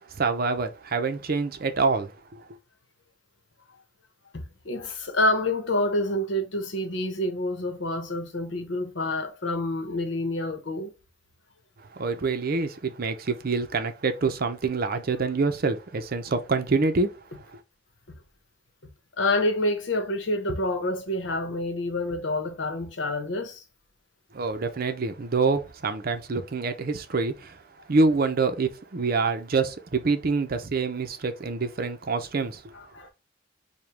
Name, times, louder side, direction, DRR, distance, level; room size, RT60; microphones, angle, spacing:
voice 1, 0.1-2.4 11.9-17.1 17.5-17.6 24.3-27.6 27.9-32.7, right 4 dB, 50° right, 0.6 m, -26 dB
voice 2, 4.3-10.9 18.1-18.2 19.2-23.6 32.7-33.1, left 1 dB, 75° left, 0.9 m, -28 dB
4.9 x 2.3 x 3.4 m
head